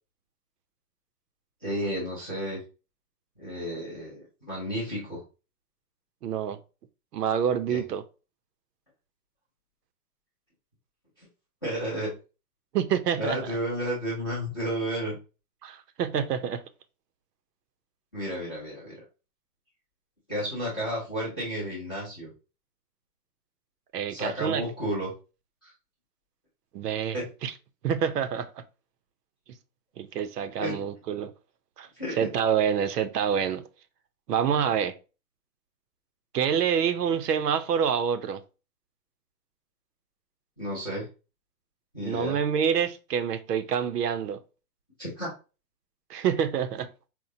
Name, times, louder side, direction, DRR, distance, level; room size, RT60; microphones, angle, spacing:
voice 1, 1.6-2.6 3.4-5.2 7.7-7.8 11.6-12.1 13.2-15.1 18.1-19.0 20.3-22.3 24.1-25.1 25.6-25.7 27.1-27.2 30.6-30.8 32.0-32.3 40.6-41.1 41.9-42.4 45.0-45.3, equal, 15° left, 0.5 m, -32 dB
voice 2, 6.2-6.6 7.1-8.0 12.7-13.6 15.6-16.6 23.9-24.7 26.7-27.5 27.8-28.6 30.0-31.3 31.8-33.6 34.3-35.0 36.3-38.4 42.0-44.4 46.1-46.9, right 8 dB, 85° right, 0.7 m, -27 dB
4.4 x 2.0 x 2.6 m
hypercardioid pair, 170°, 47 cm